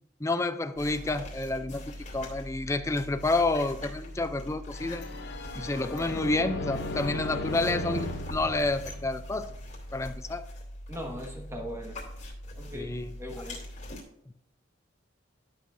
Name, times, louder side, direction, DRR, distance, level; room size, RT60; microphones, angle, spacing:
voice 1, 0.2-5.0 5.5-9.5 9.9-10.4 12.7-13.1, left 2 dB, 15° left, 10 dB, 0.4 m, -29 dB
sound 1, 0.8-14.0, left 1 dB, 40° left, 2.5 m, -42 dB
sound 2, 4.7-9.5, left 1 dB, 60° left, 0.8 m, -36 dB
voice 2, 10.9-12.0 12.5-13.6, equal, 15° right, 1 dB, 1.5 m, -39 dB
11.5 x 6.7 x 2.6 m, 0.74 s
head